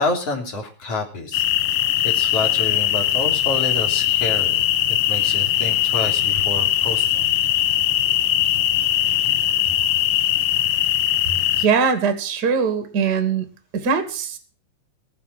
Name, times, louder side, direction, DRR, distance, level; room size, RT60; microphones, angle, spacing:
voice 1, 0.0-1.4 2.0-4.6 5.1-7.3, left 2 dB, 35° left, 2 dB, 3.6 m, -28 dB
sound 1, 1.3-11.7, left 12 dB, 90° left, 3.5 m, -20 dB
voice 2, 11.6-13.4 13.7-14.4, right 6 dB, 35° right, 8 dB, 1.7 m, -21 dB
21.0 x 7.3 x 7.4 m, 0.39 s
omnidirectional pair, 5.3 m